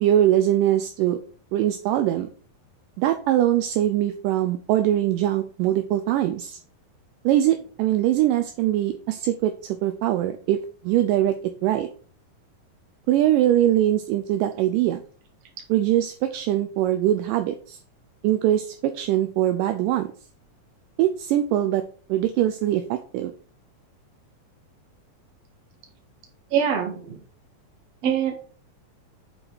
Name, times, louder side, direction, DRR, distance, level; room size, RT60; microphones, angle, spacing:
voice 1, 0.0-1.2 1.5-2.3 3.0-6.6 7.3-10.6 10.8-11.4 11.6-11.9 13.1-15.0 15.7-17.8 18.2-20.1 21.0-21.8 22.1-23.3, right 12 dB, 80° right, 8 dB, 2.1 m, -22 dB
voice 2, 26.5-27.2 28.0-28.3, right 8 dB, 55° right, 2 dB, 2.3 m, -23 dB
7.7 x 4.1 x 4.7 m, 0.43 s
omnidirectional pair, 4.0 m